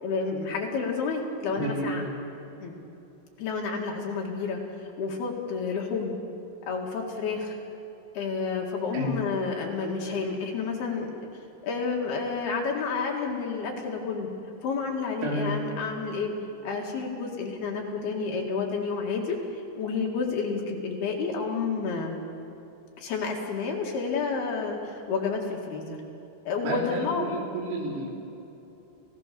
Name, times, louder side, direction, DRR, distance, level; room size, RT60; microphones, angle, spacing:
voice 1, 0.0-2.0 2.6-2.7 3.4-6.2 6.7-7.6 8.2-11.1 11.6-14.3 14.6-16.3 16.6-22.2 23.0-26.0 26.5-27.3 27.9-28.1, left 4 dB, 60° left, 0 dB, 3.5 m, -30 dB
voice 2, 1.6-2.1 8.9-9.2 15.2-15.6 26.6-28.1, right 1 dB, 90° right, -1 dB, 6.0 m, -31 dB
30.0 x 16.5 x 6.9 m, 2.9 s
omnidirectional pair, 5.9 m